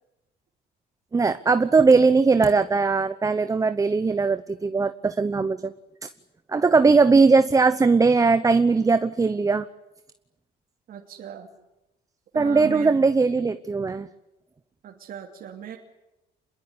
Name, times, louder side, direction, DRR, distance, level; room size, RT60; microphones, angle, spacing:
voice 1, 1.1-5.7 6.0-6.1 6.5-9.7 12.3-14.1, right 4 dB, 20° right, 12 dB, 0.9 m, -19 dB
voice 2, 10.9-11.5 12.3-13.0 14.8-15.8, right 9 dB, 60° right, 2 dB, 3.0 m, -38 dB
27.0 x 21.5 x 9.9 m, 0.94 s
cardioid pair, 110°, 17 cm